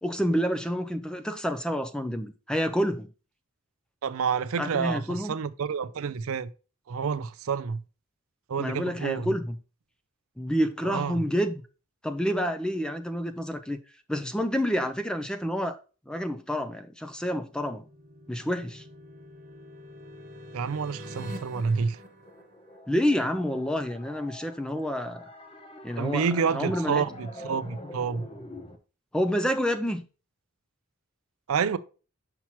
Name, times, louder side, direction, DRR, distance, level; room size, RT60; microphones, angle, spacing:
voice 1, 0.0-3.1 4.6-5.3 8.6-9.6 10.4-11.5 12.0-13.8 14.1-15.8 16.1-17.8 18.3-18.8 22.9-25.2 25.8-27.0 29.1-30.0, equal, 5° left, 0.4 m, -28 dB
voice 2, 4.0-6.5 6.9-7.8 8.5-9.3 10.8-11.2 20.5-22.0 26.0-28.3 31.5-31.8, right 6 dB, 70° right, 0.4 m, -28 dB
sound 1, 17.4-23.1, equal, 40° right, 1.2 m, -45 dB
sound 2, 22.2-28.8, left 1 dB, 25° left, 0.8 m, -44 dB
5.8 x 5.8 x 2.9 m
head